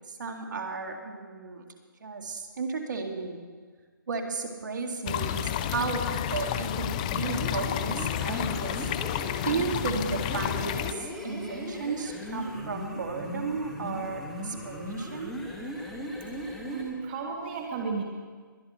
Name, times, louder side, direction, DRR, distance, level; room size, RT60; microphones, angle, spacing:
voice 1, 0.1-1.6 2.0-3.4 4.1-8.9 9.5-15.4, right 4 dB, 60° right, 4 dB, 2.1 m, -34 dB
sound 1, 5.1-10.9, left 11 dB, 20° left, 0.4 m, -31 dB
sound 2, 7.1-16.9, equal, 5° left, 1.7 m, -37 dB
voice 2, 16.3-18.0, right 5 dB, 30° right, 1 dB, 1.5 m, -34 dB
22.0 x 9.6 x 4.4 m, 1.5 s
figure-of-eight pair, 150°, 11 cm